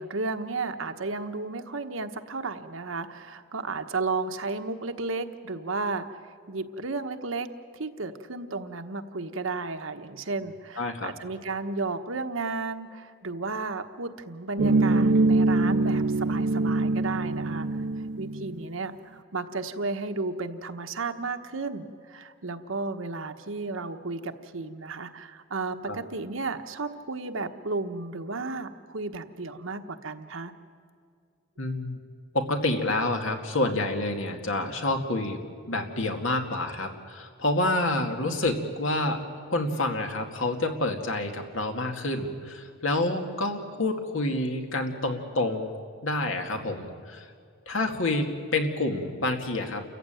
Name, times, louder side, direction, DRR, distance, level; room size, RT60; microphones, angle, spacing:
voice 1, 0.0-17.8 18.2-30.5, right 3 dB, 80° right, 7 dB, 1.2 m, -33 dB
voice 2, 10.8-11.1 25.9-26.0 31.6-32.0 32.3-35.4 35.7-45.7 46.0-47.3 47.7-49.8, left 2 dB, 75° left, 4 dB, 2.2 m, -28 dB
sound 1, 14.6-18.6, right 2 dB, 55° right, 0.5 m, -24 dB
29.0 x 15.0 x 9.0 m, 2.2 s
head